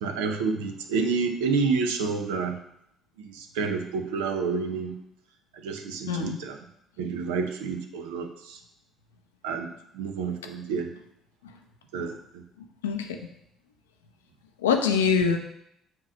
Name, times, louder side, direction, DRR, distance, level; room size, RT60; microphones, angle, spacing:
voice 1, 0.0-2.6 3.4-4.9 5.6-6.6 7.0-8.6 9.4-9.7 9.9-10.9 11.9-12.1, right 5 dB, 75° right, 5 dB, 0.7 m, -29 dB
voice 2, 6.1-6.4 12.8-13.1 14.6-15.4, left 6 dB, 85° left, 5 dB, 0.6 m, -23 dB
7.5 x 3.1 x 6.1 m, 0.75 s
hypercardioid pair, 50°, 0 cm